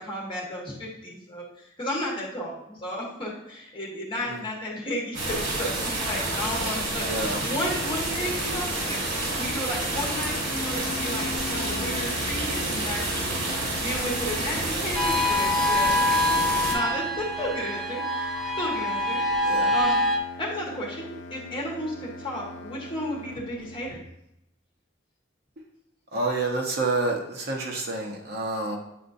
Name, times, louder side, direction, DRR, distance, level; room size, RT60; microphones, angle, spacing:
voice 1, 0.0-13.3 13.8-18.3 18.6-19.2 19.7-20.0 20.4-24.0, left 1 dB, 25° left, -3 dB, 1.4 m, -33 dB
sound 1, 5.1-16.8, right 2 dB, 90° right, 1.7 m, -29 dB
voice 2, 7.1-7.4 19.4-19.7 26.1-28.8, right 2 dB, 50° right, 1 dB, 0.9 m, -28 dB
sound 2, 9.9-24.0, left 2 dB, 60° left, 0.6 m, -40 dB
sound 3, 15.0-20.2, left 1 dB, ahead, 0.4 m, -25 dB
8.3 x 4.3 x 2.7 m, 0.84 s
head